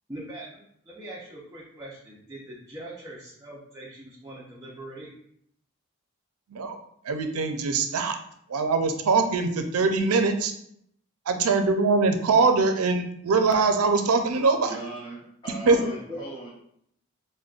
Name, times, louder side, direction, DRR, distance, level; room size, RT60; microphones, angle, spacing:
voice 1, 0.1-5.1 15.8-16.2, right 1 dB, 15° right, -7 dB, 0.5 m, -41 dB
voice 2, 7.0-8.2 8.5-10.5 11.3-14.8 15.7-15.8, right 4 dB, 85° right, 7 dB, 0.5 m, -22 dB
voice 3, 14.7-16.5, right 2 dB, 20° left, -7 dB, 1.2 m, -39 dB
5.0 x 2.1 x 2.4 m, 0.70 s
head